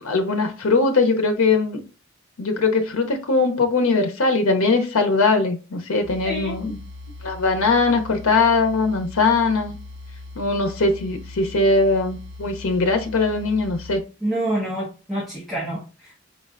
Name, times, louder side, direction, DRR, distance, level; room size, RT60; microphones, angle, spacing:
voice 1, 0.0-1.8 2.4-6.8 7.2-9.8 10.4-14.0, left 3 dB, 85° left, 0.6 m, -20 dB
sound 1, 6.0-14.0, left 2 dB, 60° right, 0.7 m, -39 dB
voice 2, 6.2-6.6 14.2-16.2, right 1 dB, ahead, 0.9 m, -27 dB
4.9 x 3.1 x 2.4 m
head